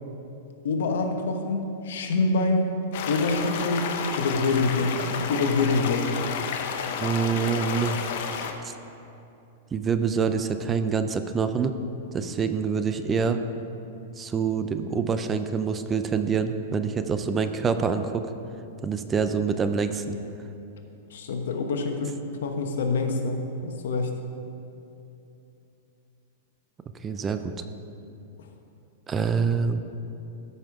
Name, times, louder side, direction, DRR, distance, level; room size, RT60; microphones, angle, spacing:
voice 1, 0.6-2.7 3.1-3.9 4.2-6.2 21.1-22.1 22.4-24.2, left 3 dB, 80° left, 4 dB, 1.1 m, -26 dB
sound 1, 2.9-8.5, left 6 dB, 60° left, 0.8 m, -31 dB
voice 2, 7.0-8.0 8.6-8.7 9.7-11.8 12.1-13.4 14.2-18.3 18.8-20.2 27.0-27.5 29.1-29.8, right 6 dB, 20° right, 9 dB, 0.4 m, -26 dB
14.0 x 5.7 x 4.7 m, 2.8 s
supercardioid pair, 145°, 0 cm